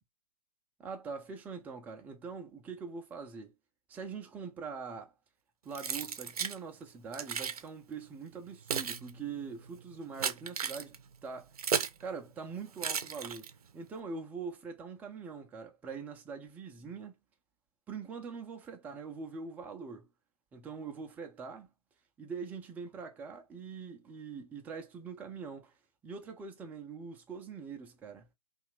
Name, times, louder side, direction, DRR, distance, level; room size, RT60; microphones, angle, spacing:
voice 1, 0.8-3.5 3.9-5.1 5.6-11.0 11.2-11.5 12.0-13.5 13.7-17.1 17.9-20.1 20.5-21.7 22.2-25.7 26.0-28.3, right 5 dB, 10° right, 0.4 m, -43 dB
Keys jangling, 5.7-6.6 7.1-7.6 8.3-12.0 12.8-13.7, right 7 dB, 65° right, 0.6 m, -35 dB
2.7 x 2.4 x 3.0 m
figure-of-eight pair, 120°, 20 cm